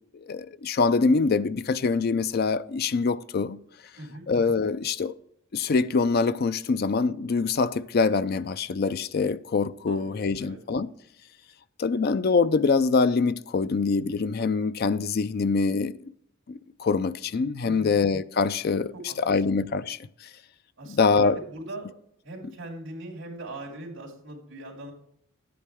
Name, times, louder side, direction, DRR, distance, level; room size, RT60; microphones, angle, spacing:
voice 1, 0.1-3.6 4.3-5.1 5.5-10.9 11.8-16.1 16.5-20.0 20.9-21.4, left 4 dB, 50° left, 0.4 m, -24 dB
voice 2, 4.0-4.3 9.9-10.6 17.6-17.9 18.9-19.5 20.8-21.9 22.2-24.9, right 1 dB, 70° right, 2.5 m, -40 dB
10.0 x 8.5 x 3.5 m
head